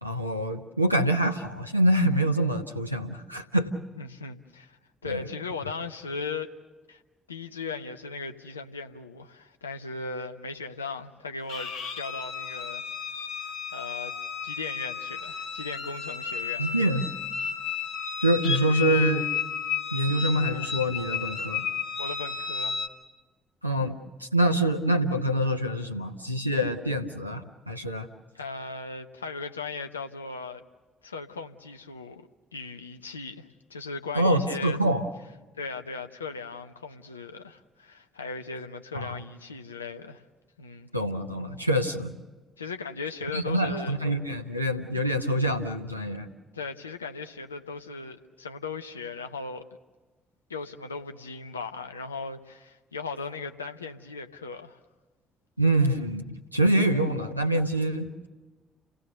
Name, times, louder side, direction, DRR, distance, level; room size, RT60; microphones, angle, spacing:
voice 1, 0.0-3.7 5.0-5.3 16.6-17.1 18.2-19.3 19.9-21.7 23.6-28.1 34.1-35.1 38.9-39.2 40.9-42.1 43.3-46.3 55.6-58.1, right 1 dB, 90° right, 0.9 m, -25 dB
voice 2, 3.9-4.8 5.0-6.5 6.9-7.0 7.3-12.8 13.3-14.1 14.4-16.7 22.0-22.8 28.4-30.6 31.0-34.8 35.6-40.2 40.6-40.9 42.6-44.0 46.5-49.6 50.5-54.8, left 4 dB, 80° left, 0.8 m, -38 dB
sound 1, 11.5-22.9, left 7 dB, 65° left, 1.5 m, -33 dB
29.5 x 17.0 x 6.8 m
figure-of-eight pair, 45°, 0 cm